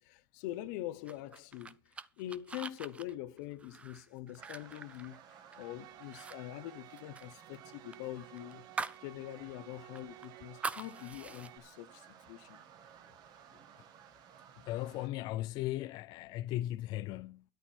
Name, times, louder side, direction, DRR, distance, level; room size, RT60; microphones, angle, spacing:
voice 1, 0.0-8.6 9.0-12.6, left 14 dB, 55° left, 1.0 m, -44 dB
sound 1, 1.1-5.7 6.0-6.4 6.6-9.1 9.4-9.5 9.9-11.5, right 4 dB, 10° right, 0.6 m, -43 dB
sound 2, 4.4-15.1, right 8 dB, 35° right, 1.8 m, -57 dB
sound 3, 5.5-11.6, right 17 dB, 60° right, 1.1 m, -55 dB
voice 2, 14.5-17.4, left 15 dB, 40° left, 0.6 m, -37 dB
13.0 x 11.0 x 4.5 m
supercardioid pair, 150°, 11 cm